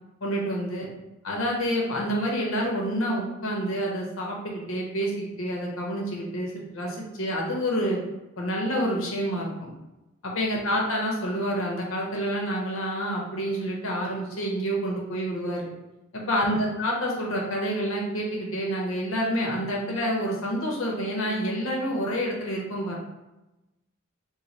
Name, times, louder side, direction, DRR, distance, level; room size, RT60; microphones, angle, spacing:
voice 1, 0.2-0.9 1.2-8.0 8.4-9.7 10.2-15.7 16.1-23.0, equal, 75° left, -2 dB, 0.9 m, -28 dB
3.1 x 2.2 x 4.0 m, 1.0 s
head